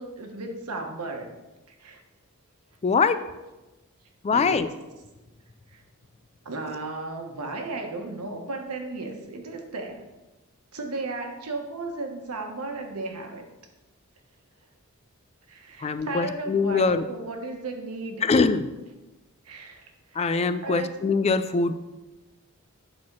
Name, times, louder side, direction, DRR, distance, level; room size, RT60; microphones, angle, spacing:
voice 1, 0.0-1.3 1.8-2.0 4.3-4.7 5.7-5.8 6.4-10.0 10.7-13.4 15.5-18.2 19.4-20.3 20.6-20.9, right 2 dB, 90° right, 3 dB, 1.3 m, -34 dB
voice 2, 2.8-3.2 4.2-4.7 15.8-17.1 18.2-18.7 20.2-21.7, left 4 dB, 30° left, 12 dB, 0.3 m, -23 dB
8.5 x 4.4 x 6.0 m, 1.1 s
head